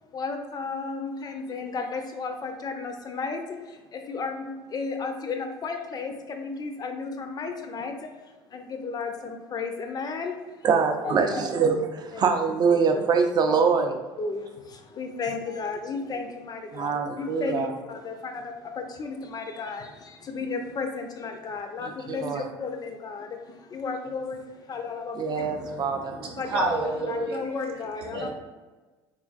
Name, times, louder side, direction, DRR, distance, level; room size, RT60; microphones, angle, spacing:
voice 1, 0.1-3.4 4.1-7.9 8.5-10.3 10.7-11.4 12.1-12.3 12.7-13.0 13.5-13.6 14.2-14.5 15.0-17.5 17.9-18.4 19.0-19.8 20.3-23.3 23.7-24.4 24.7-25.1 26.4-26.7 27.1-28.3, left 4 dB, 30° left, 5 dB, 0.4 m, -33 dB
voice 2, 10.6-14.0 16.7-17.7 21.8-22.5 25.1-26.2, right 5 dB, 35° right, 5 dB, 0.4 m, -24 dB
voice 3, 25.4-25.8 26.1-27.4 28.1-28.3, right 2 dB, 85° right, -1 dB, 0.6 m, -29 dB
3.6 x 2.4 x 2.4 m, 1.2 s
figure-of-eight pair, 60°, 13 cm